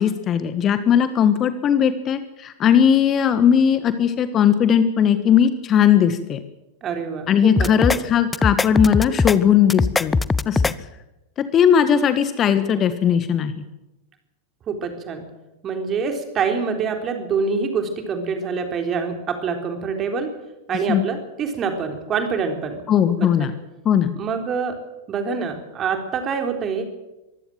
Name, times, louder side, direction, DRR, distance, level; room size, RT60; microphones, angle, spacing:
voice 1, 0.0-6.4 7.3-10.2 10.5-10.7 11.5-13.6 20.9-21.0 22.9-23.5 23.8-24.1, left 8 dB, 30° left, 11 dB, 1.4 m, -18 dB
voice 2, 6.8-8.1 14.7-15.2 15.6-20.3 20.7-22.8 23.2-23.5 24.2-24.7 25.1-26.8, right 5 dB, 30° right, 5 dB, 3.8 m, -26 dB
sound 1, 7.6-8.0 8.3-9.4 9.7-10.7, left 4 dB, 10° left, 0.7 m, -20 dB
23.5 x 16.0 x 7.6 m, 0.98 s
figure-of-eight pair, 90°, 0 cm